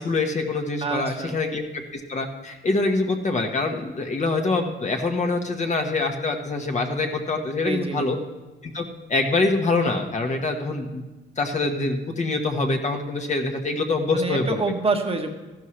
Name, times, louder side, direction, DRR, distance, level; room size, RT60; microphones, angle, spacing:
voice 1, 0.0-8.2 8.6-11.0 11.4-14.6, left 3 dB, 35° left, 3 dB, 1.4 m, -25 dB
voice 2, 0.8-1.4 7.6-8.1 14.1-15.3, right 3 dB, 30° right, 4 dB, 1.3 m, -27 dB
14.0 x 12.0 x 3.2 m, 1.2 s
cardioid pair, 90°, 20 cm